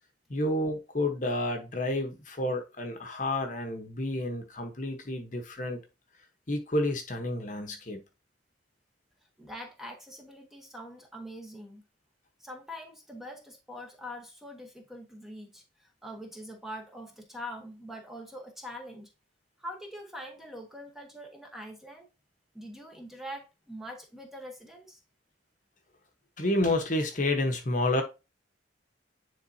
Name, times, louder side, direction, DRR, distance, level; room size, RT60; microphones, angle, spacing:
voice 1, 0.3-5.8 6.5-8.0 26.4-28.0, left 1 dB, 40° left, 1.0 m, -30 dB
voice 2, 9.4-11.8 12.4-19.1 19.6-22.1 22.5-25.0, equal, ahead, 1.1 m, -43 dB
9.8 x 3.7 x 2.7 m
head